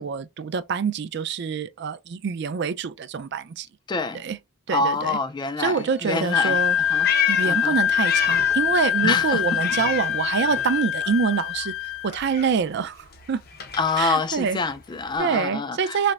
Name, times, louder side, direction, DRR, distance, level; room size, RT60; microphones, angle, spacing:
voice 1, 0.0-3.7 4.1-4.4 4.7-5.2 5.6-6.8 7.3-11.7 12.0-13.4 14.0-14.6 15.2-16.1, right 6 dB, 60° right, 0.4 m, -26 dB
voice 2, 3.9-4.2 4.7-7.1 7.4-7.8 9.0-9.6 13.8-16.1, left 3 dB, 20° left, 0.3 m, -26 dB
sound 1, 5.6-10.8, left 1 dB, 75° left, 1.6 m, -43 dB
Wind instrument woodwind instrument, 6.3-12.1, left 9 dB, 90° left, 0.4 m, -24 dB
Meow, 6.6-8.7 9.0-10.7 11.0-15.2, left 7 dB, 50° left, 0.7 m, -32 dB
4.2 x 2.0 x 2.3 m
head